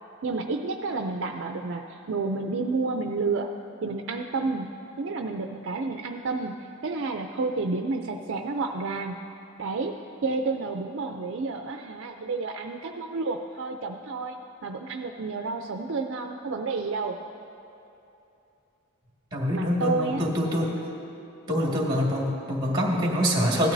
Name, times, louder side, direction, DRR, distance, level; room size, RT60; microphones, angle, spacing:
voice 1, 0.2-3.5 3.8-9.2 9.6-10.0 10.2-14.4 14.6-17.2 19.5-20.3, right 3 dB, 55° right, 4 dB, 0.4 m, -30 dB
voice 2, 19.3-20.7 21.5-23.7, equal, 20° right, -3 dB, 1.9 m, -25 dB
17.0 x 12.0 x 2.7 m, 2.8 s
head